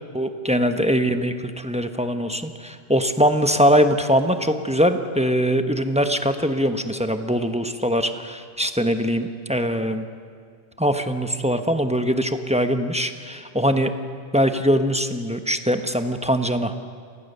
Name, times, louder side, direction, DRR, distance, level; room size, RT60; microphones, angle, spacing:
voice 1, 0.1-10.0 10.8-13.9 14.3-16.7, equal, 5° right, 7 dB, 1.0 m, -22 dB
28.5 x 19.5 x 6.8 m, 2.2 s
omnidirectional pair, 1.1 m